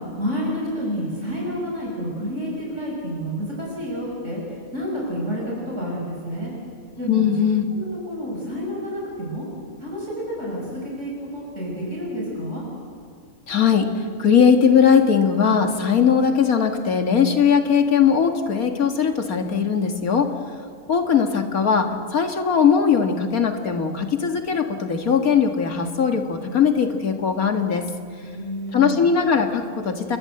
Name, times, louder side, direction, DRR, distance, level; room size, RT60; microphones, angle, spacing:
voice 1, 0.2-4.4 4.7-6.5 7.0-7.4 7.7-9.5 9.8-12.6 28.2-29.0, equal, 55° right, -4 dB, 6.9 m, -29 dB
voice 2, 7.1-7.6 13.5-13.9 14.2-20.3 20.9-27.9 28.7-30.2, left 7 dB, 90° left, 5 dB, 2.3 m, -19 dB
29.0 x 22.5 x 7.8 m, 2.2 s
omnidirectional pair, 1.5 m